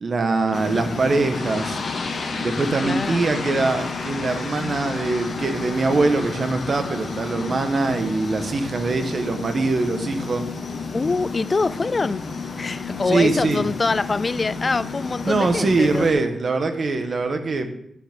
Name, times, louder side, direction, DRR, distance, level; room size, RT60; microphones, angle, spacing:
voice 1, 0.0-1.8 2.1-10.5 13.1-13.6 15.2-17.7, right 3 dB, 50° right, 1.3 m, -23 dB
sound 1, 0.5-16.1, left 4 dB, 55° left, 1.6 m, -31 dB
voice 2, 2.8-3.3 10.9-12.2 12.6-16.1, left 3 dB, 35° left, 0.4 m, -24 dB
12.5 x 7.5 x 3.7 m
cardioid pair, 90°, 0 cm